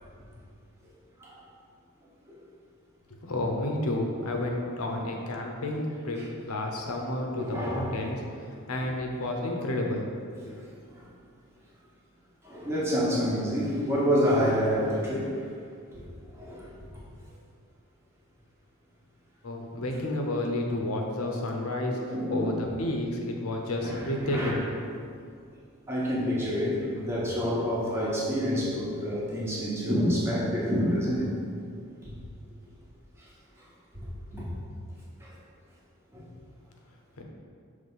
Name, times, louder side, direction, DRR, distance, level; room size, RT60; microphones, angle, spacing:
voice 1, 3.1-10.1 19.4-22.0 22.3-24.6 25.0-25.1 37.2-37.3, left 1 dB, 90° left, 1 dB, 0.8 m, -31 dB
voice 2, 7.4-7.9 10.5-10.6 10.9-11.1 12.4-15.3 15.9-16.6 21.9-22.6 23.8-24.6 25.9-31.3 32.0-32.1 33.9-34.1 34.3-34.5 35.2-35.3 36.1-36.2, equal, 10° right, -6 dB, 1.1 m, -28 dB
5.3 x 3.4 x 5.5 m, 2.3 s
head